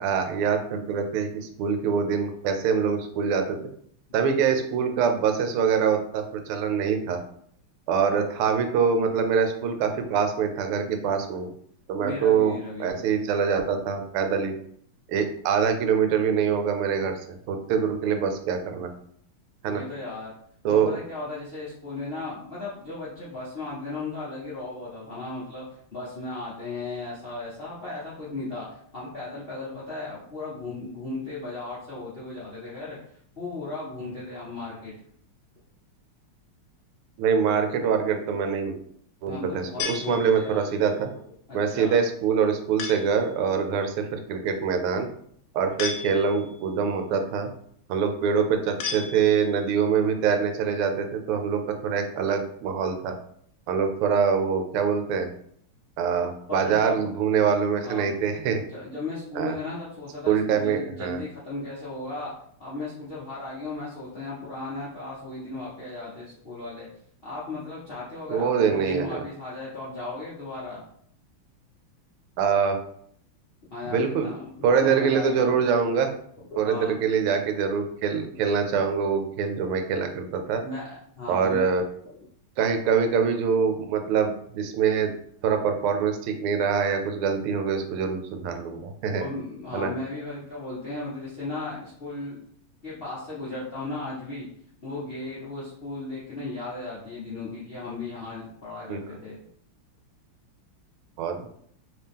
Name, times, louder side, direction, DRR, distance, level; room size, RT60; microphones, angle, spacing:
voice 1, 0.0-3.6 4.1-7.2 7.9-11.5 11.9-14.5 15.1-18.9 19.6-19.8 20.6-21.0 37.2-38.8 39.2-41.1 41.5-45.1 45.5-47.5 47.9-53.1 53.7-55.3 56.0-58.6 59.3-59.6 60.3-61.2 68.3-69.2 72.4-72.8 73.9-74.3 74.6-76.1 76.6-80.6 81.3-81.8 82.6-85.1 85.4-89.2 89.7-89.9 98.9-99.0 101.2-101.5, right 6 dB, 85° right, 6 dB, 1.5 m, -24 dB
voice 2, 12.0-13.0 19.6-20.3 20.7-25.6 25.9-33.0 33.4-34.9 39.3-40.7 41.5-42.0 56.5-57.0 57.8-58.1 58.7-62.3 62.6-66.9 67.2-70.8 73.7-74.5 74.8-75.5 76.5-77.0 80.6-81.7 89.1-92.4 92.8-94.5 94.8-99.4, left 2 dB, 60° left, -8 dB, 0.6 m, -36 dB
sound 1, 39.8-40.7 42.8-43.3 45.8-46.6 48.8-49.7, left 6 dB, 75° left, 1.0 m, -35 dB
3.5 x 2.8 x 3.5 m, 0.65 s
omnidirectional pair, 2.4 m